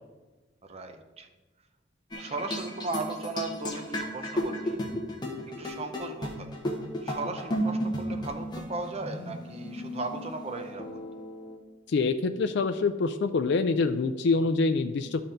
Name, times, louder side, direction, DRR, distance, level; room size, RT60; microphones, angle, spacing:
voice 1, 0.7-1.3 2.2-4.8 5.6-6.5 7.0-10.9, right 3 dB, 35° right, 6 dB, 0.6 m, -36 dB
sound 1, 2.1-11.6, equal, 25° left, 1.1 m, -34 dB
voice 2, 11.9-15.2, left 4 dB, 65° left, 8 dB, 0.4 m, -25 dB
11.5 x 4.3 x 3.9 m, 1.2 s
head